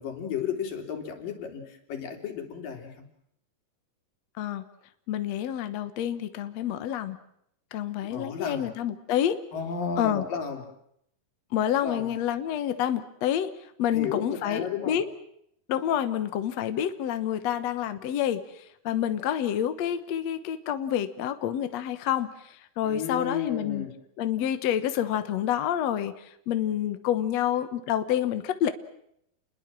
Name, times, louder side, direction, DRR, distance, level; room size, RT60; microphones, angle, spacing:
voice 1, 0.0-2.9 8.1-8.7 9.5-10.6 11.8-12.1 13.9-15.0 22.8-23.9, left 6 dB, 85° left, 4 dB, 5.0 m, -33 dB
voice 2, 5.1-7.2 7.7-9.4 10.0-10.2 11.5-13.5 13.8-15.0 15.7-23.9 24.2-28.7, left 10 dB, 60° left, 10 dB, 2.2 m, -28 dB
29.5 x 22.0 x 7.5 m, 0.75 s
omnidirectional pair, 3.8 m